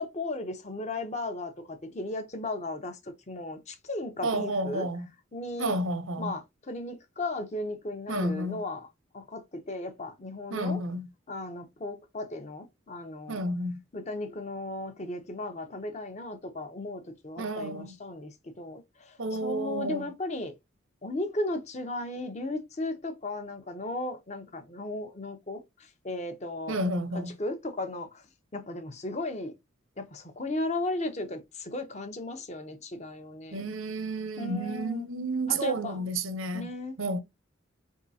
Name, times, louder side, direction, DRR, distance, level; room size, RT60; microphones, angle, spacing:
voice 1, 0.0-4.9 5.3-5.8 6.2-8.9 9.1-10.8 11.3-13.4 13.9-20.5 21.0-25.6 26.0-26.8 27.1-28.2 28.5-29.5 30.0-33.7 34.4-35.1 35.5-36.1 36.5-36.9, left 2 dB, 35° left, 0.7 m, -36 dB
voice 2, 4.2-5.1 5.6-6.3 8.1-8.6 10.5-11.1 13.3-13.8 17.4-17.9 19.2-20.1 26.7-27.3 33.5-36.7 37.0-37.2, right 1 dB, 90° right, 0.8 m, -31 dB
4.6 x 3.7 x 2.7 m
head